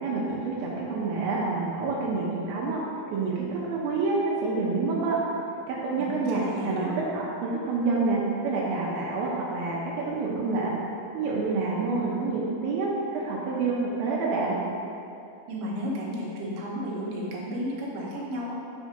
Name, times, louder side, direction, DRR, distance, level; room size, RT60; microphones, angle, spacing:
voice 1, 0.0-2.8 3.1-5.2 5.7-10.7 11.1-14.6, right 3 dB, 90° right, -4 dB, 2.2 m, -28 dB
voice 2, 6.0-6.9 15.5-18.5, equal, 70° right, -5 dB, 2.1 m, -33 dB
6.1 x 3.7 x 5.1 m, 2.7 s
omnidirectional pair, 5.1 m